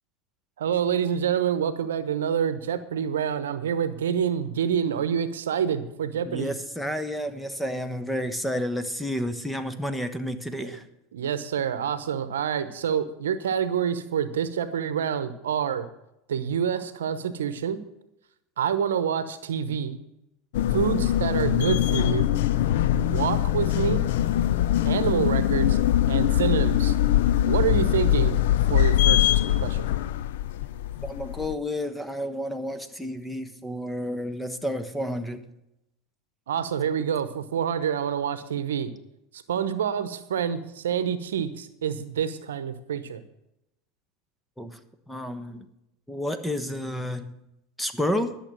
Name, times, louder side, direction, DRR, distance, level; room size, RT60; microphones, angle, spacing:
voice 1, 0.6-6.6 10.6-10.8 11.1-15.9 16.3-17.8 18.6-20.0 20.7-22.3 22.9-24.0 24.8-25.8 26.1-27.0 27.4-28.4 28.7-29.9 36.5-38.9 39.5-43.2, right 8 dB, 85° right, 13 dB, 0.9 m, -27 dB
voice 2, 6.2-10.8 20.9-21.1 31.0-35.4 44.6-44.8 45.1-45.7 46.1-47.3 47.8-48.3, equal, 5° left, 9 dB, 1.2 m, -30 dB
sound 1, 20.5-31.5, left 12 dB, 70° left, 0.6 m, -23 dB
12.0 x 6.9 x 7.6 m, 0.85 s
hypercardioid pair, 90°, 0 cm